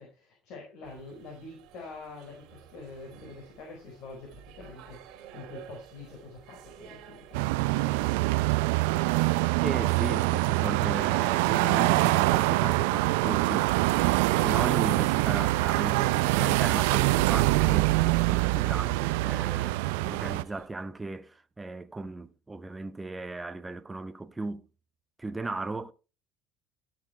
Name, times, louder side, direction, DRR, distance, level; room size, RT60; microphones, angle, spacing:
voice 1, 0.0-8.3, left 3 dB, 65° left, 4.4 m, -46 dB
sound 1, 0.8-20.7, right 9 dB, 70° right, 2.3 m, -48 dB
sound 2, 7.3-20.4, right 19 dB, 85° right, 0.4 m, -24 dB
voice 2, 9.6-13.8 14.4-24.7 25.2-25.9, right 3 dB, 15° right, 0.9 m, -36 dB
13.5 x 6.2 x 3.4 m
supercardioid pair, 95°, 0 cm